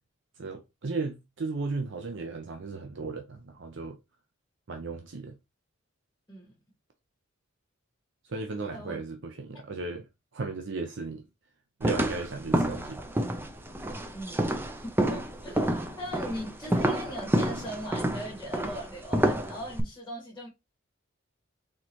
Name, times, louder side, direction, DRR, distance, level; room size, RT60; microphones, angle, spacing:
voice 1, 0.4-4.0 4.7-5.3 8.3-10.0 10.3-11.2 11.8-13.0, right 3 dB, 60° right, 0.6 m, -35 dB
voice 2, 8.7-9.0 9.5-9.6 14.1-20.5, equal, 10° left, 1.8 m, -39 dB
sound 1, 11.8-19.8, right 1 dB, 10° right, 0.5 m, -29 dB
4.4 x 3.8 x 3.0 m
head